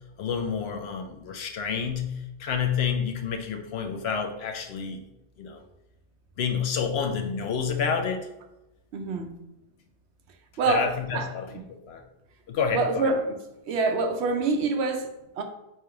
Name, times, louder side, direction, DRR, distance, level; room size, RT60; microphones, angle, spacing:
voice 1, 0.2-5.0 5.4-5.6 6.4-8.3 10.7-11.5 11.9-12.0 12.5-13.1, left 6 dB, 70° left, 5 dB, 0.8 m, -29 dB
voice 2, 8.9-9.3 10.6-10.8 11.1-11.3 12.7-13.4 13.7-15.4, right 3 dB, 75° right, 6 dB, 0.9 m, -26 dB
3.3 x 2.9 x 4.7 m, 0.92 s
omnidirectional pair, 1.2 m